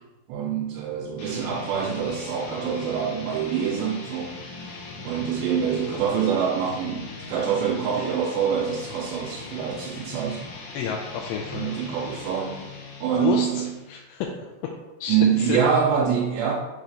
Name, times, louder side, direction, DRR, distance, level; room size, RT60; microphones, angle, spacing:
voice 1, 0.3-4.3 5.0-10.4 11.5-12.6 13.0-13.7 15.1-16.5, right 7 dB, 80° right, -2 dB, 2.8 m, -25 dB
sound 1, 1.2-14.0, left 3 dB, 60° left, 2.0 m, -40 dB
voice 2, 10.7-11.7 13.1-14.3 15.0-15.6, left 7 dB, 80° left, 0 dB, 2.5 m, -30 dB
6.8 x 3.1 x 5.0 m, 1.1 s
omnidirectional pair, 5.0 m